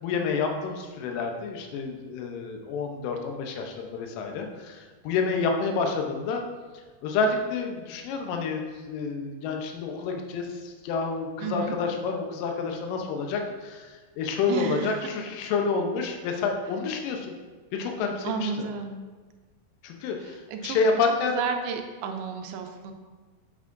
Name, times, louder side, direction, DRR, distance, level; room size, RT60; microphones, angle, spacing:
voice 1, 0.0-6.4 7.0-17.3 17.7-18.5 19.8-21.4, left 4 dB, 75° left, 3 dB, 2.2 m, -29 dB
voice 2, 11.4-11.8 14.5-15.1 18.2-19.1 20.2-20.8 21.4-22.9, right 5 dB, 80° right, 4 dB, 2.4 m, -32 dB
8.3 x 7.1 x 2.6 m, 1.4 s
omnidirectional pair, 4.6 m